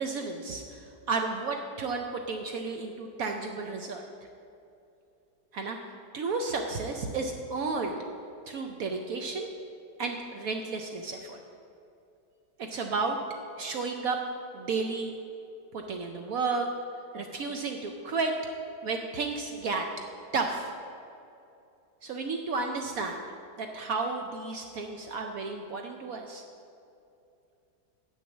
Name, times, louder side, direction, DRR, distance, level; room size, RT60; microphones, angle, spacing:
voice 1, 0.0-4.0 5.5-8.0 8.5-9.5 10.0-11.4 12.6-13.2 13.6-14.2 14.5-15.2 15.7-16.7 17.1-18.3 18.8-19.9 20.3-20.7 22.0-23.2 23.6-26.4, right 4 dB, 70° right, 3 dB, 0.8 m, -32 dB
8.3 x 6.1 x 7.1 m, 2.7 s
omnidirectional pair, 2.0 m